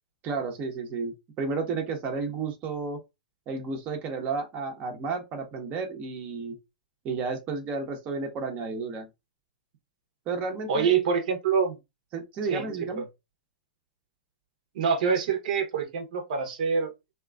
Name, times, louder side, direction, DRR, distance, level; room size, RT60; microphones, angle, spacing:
voice 1, 0.2-3.0 3.5-6.6 7.0-9.1 10.3-11.0 12.1-13.0, right 4 dB, 35° right, 0.8 m, -32 dB
voice 2, 10.7-11.8 12.5-12.6 12.9-13.0 14.7-16.9, right 6 dB, 60° right, 0.8 m, -25 dB
2.9 x 2.4 x 2.3 m
hypercardioid pair, 115°, 5 cm